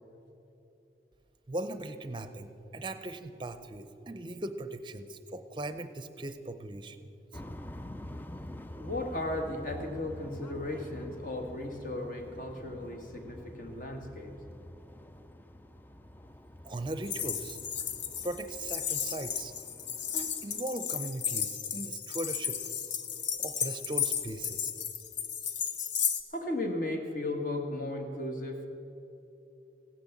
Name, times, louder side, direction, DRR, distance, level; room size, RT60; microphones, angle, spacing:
voice 1, 1.5-7.0 7.3-7.4 16.6-17.6 18.2-19.5 20.1-22.6 23.4-24.7, right 1 dB, 25° right, 10 dB, 0.6 m, -38 dB
sound 1, 7.3-20.6, left 1 dB, 10° left, 0.3 m, -47 dB
voice 2, 8.8-14.3 26.3-28.7, left 1 dB, 45° left, 4 dB, 1.5 m, -35 dB
sound 2, 17.1-26.2, left 8 dB, 85° left, 1.0 m, -34 dB
15.5 x 10.5 x 7.3 m, 3.0 s
head